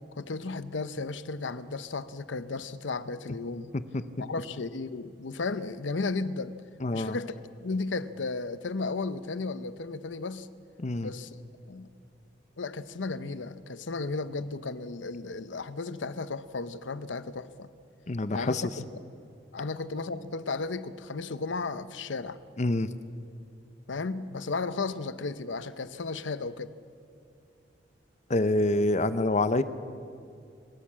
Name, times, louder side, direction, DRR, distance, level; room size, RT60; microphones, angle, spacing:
voice 1, 0.1-3.7 4.2-6.6 6.9-7.3 7.6-10.5 11.0-11.4 11.7-11.9 12.6-17.7 18.3-18.9 19.5-22.4 23.9-26.7, left 3 dB, 85° left, 14 dB, 0.8 m, -34 dB
voice 2, 6.8-7.2 10.8-11.1 18.1-18.6 22.6-22.9 28.3-29.6, left 2 dB, 40° left, 13 dB, 0.7 m, -26 dB
29.0 x 13.0 x 7.5 m, 2.5 s
head